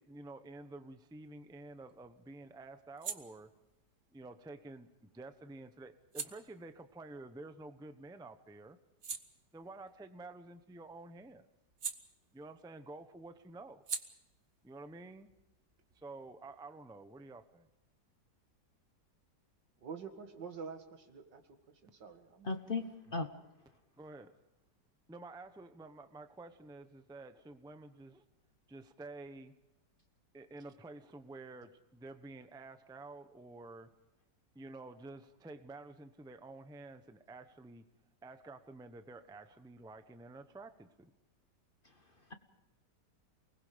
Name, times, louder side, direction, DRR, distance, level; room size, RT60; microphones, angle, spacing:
voice 1, 0.0-3.5 4.1-8.8 9.5-11.5 12.3-13.8 14.6-15.3 15.9-17.7 24.0-24.4 25.1-28.2 28.7-29.5 30.3-33.9 34.5-37.8 38.2-41.1, right 2 dB, 5° right, 9 dB, 0.6 m, -50 dB
sound 1, 1.2-8.1 8.5-12.8 13.0-16.4, right 6 dB, 45° right, 1.4 m, -49 dB
voice 2, 19.8-22.5 22.8-22.9, right 5 dB, 85° right, 6 dB, 2.6 m, -47 dB
voice 3, 22.4-23.4 41.8-42.3, left 3 dB, 35° left, 8 dB, 1.0 m, -38 dB
29.0 x 20.0 x 5.2 m, 0.94 s
omnidirectional pair, 1.9 m